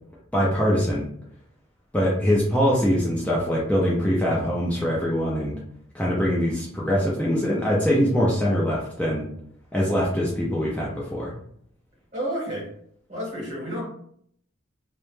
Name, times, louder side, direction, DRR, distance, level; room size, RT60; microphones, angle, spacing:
voice 1, 0.3-1.0 1.9-5.5 5.9-9.2 9.7-11.3, equal, 5° left, -5 dB, 0.3 m, -23 dB
voice 2, 12.1-12.7 13.1-13.8, equal, 35° right, -4 dB, 0.9 m, -30 dB
2.1 x 2.0 x 3.0 m, 0.66 s
head